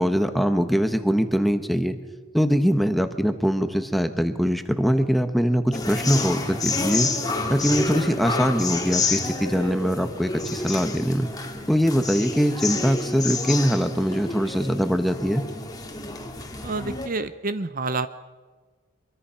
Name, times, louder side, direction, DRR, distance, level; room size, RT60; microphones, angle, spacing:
voice 1, 0.0-2.0 2.3-7.1 7.5-11.3 11.7-15.4, equal, ahead, 8 dB, 1.3 m, -22 dB
sound 1, 5.7-17.1, left 3 dB, 20° left, 2.2 m, -29 dB
voice 2, 16.6-18.1, right 3 dB, 40° right, 12 dB, 0.7 m, -28 dB
24.5 x 23.0 x 5.8 m, 1.4 s
head